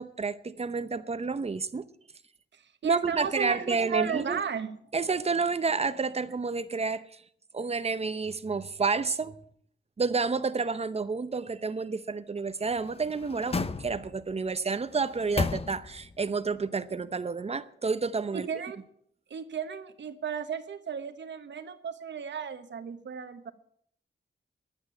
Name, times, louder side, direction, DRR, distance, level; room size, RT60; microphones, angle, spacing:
voice 1, 0.0-1.9 2.8-4.4 4.9-7.0 7.5-9.3 10.0-18.5, right 4 dB, 35° right, 0.8 m, -30 dB
voice 2, 2.5-4.7 18.3-18.8 19.3-23.5, right 7 dB, 75° right, 1.2 m, -34 dB
sound 1, 12.6-14.3 14.9-16.2 16.6-16.7, left 3 dB, 30° left, 0.7 m, -34 dB
11.5 x 8.9 x 9.2 m
wide cardioid pair, 145°, 19 cm